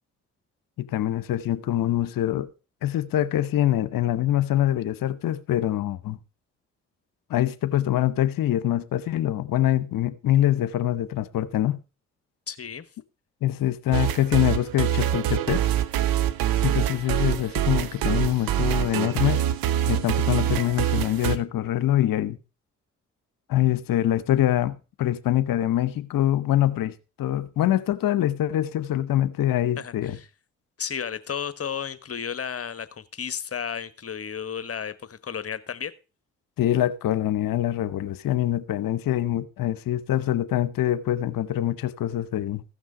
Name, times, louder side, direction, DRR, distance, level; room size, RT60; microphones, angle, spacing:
voice 1, 0.8-2.5 2.8-6.2 7.3-11.8 13.4-15.6 16.6-19.4 19.8-22.4 23.5-30.2 36.6-42.6, left 13 dB, 65° left, 1.0 m, -24 dB
voice 2, 12.5-12.9 29.8-30.3 30.8-35.9, left 7 dB, 40° left, 1.3 m, -33 dB
sound 1, 13.9-21.4, right 11 dB, 70° right, 0.9 m, -25 dB
14.5 x 6.1 x 4.9 m
hypercardioid pair, 45°, 37 cm